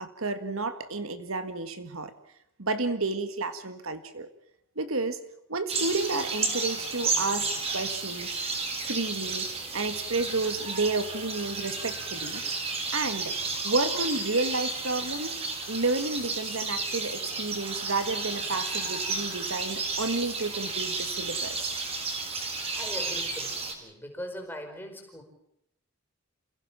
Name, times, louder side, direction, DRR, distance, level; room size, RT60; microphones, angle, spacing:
voice 1, 0.0-2.1 2.6-4.3 4.7-5.2 5.5-7.5 7.7-8.4 8.8-9.5 9.7-12.4 12.9-15.4 15.7-21.8, right 3 dB, 70° right, 10 dB, 1.8 m, -31 dB
sound 1, 5.7-23.7, right 4 dB, 25° right, 3.8 m, -32 dB
voice 2, 22.5-25.2, equal, 10° left, 3 dB, 4.8 m, -41 dB
29.0 x 16.5 x 7.3 m, 0.80 s
head